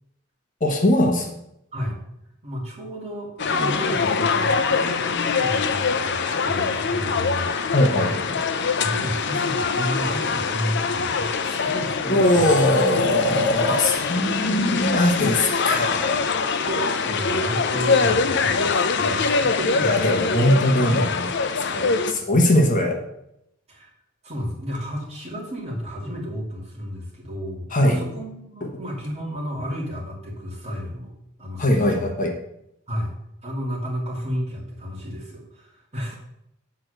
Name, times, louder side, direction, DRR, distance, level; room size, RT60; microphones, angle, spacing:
voice 1, 0.6-1.3 7.7-8.1 12.1-16.2 19.8-21.1 21.7-23.0 27.7-28.0 31.6-32.3, left 1 dB, 40° left, 2 dB, 1.1 m, -20 dB
voice 2, 2.4-8.2 8.8-12.5 15.3-15.5 16.6-20.1 20.4-20.6 20.8-21.1 23.7-23.9 24.2-31.1 31.4-32.1 32.9-33.1 33.4-36.2, equal, 30° right, -3 dB, 2.8 m, -32 dB
sound 1, 3.4-22.1, left 4 dB, 55° left, 0.6 m, -23 dB
8.5 x 4.7 x 6.5 m, 0.80 s
head